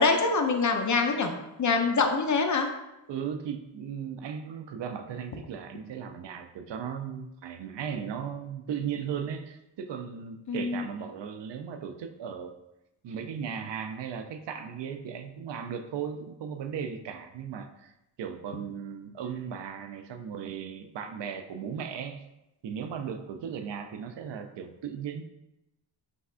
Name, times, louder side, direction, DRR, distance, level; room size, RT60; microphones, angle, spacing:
voice 1, 0.0-1.3 1.6-2.7 10.5-10.8, left 4 dB, 40° left, 5 dB, 0.6 m, -24 dB
voice 2, 3.1-12.5 13.0-17.9 18.2-22.2 22.6-25.2, right 7 dB, 65° right, 8 dB, 0.5 m, -36 dB
5.2 x 3.4 x 2.4 m, 0.92 s
cardioid pair, 75°, 47 cm